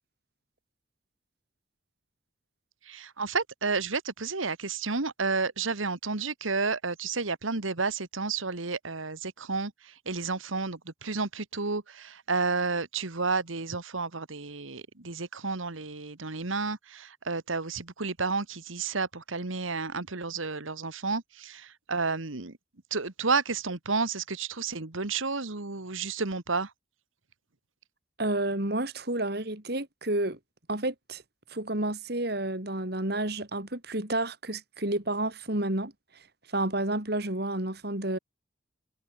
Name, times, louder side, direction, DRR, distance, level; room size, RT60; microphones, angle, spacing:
voice 1, 2.9-22.6 22.9-26.7, right 4 dB, 85° right, 1.8 m, -31 dB
voice 2, 28.2-30.4 30.7-31.2 31.5-35.9 36.5-38.2, right 1 dB, 55° right, 3.1 m, -30 dB
head